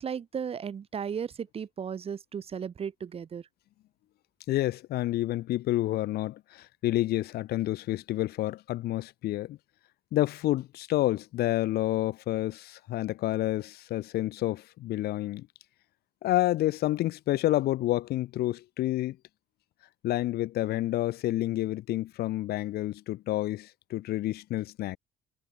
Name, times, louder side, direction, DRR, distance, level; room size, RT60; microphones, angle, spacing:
voice 1, 0.0-3.4, right 7 dB, 35° right, 1.0 m, -35 dB
voice 2, 4.5-9.6 10.1-15.5 16.2-19.2 20.0-25.0, left 15 dB, 70° left, 0.8 m, -29 dB
cardioid pair, 110°, 17 cm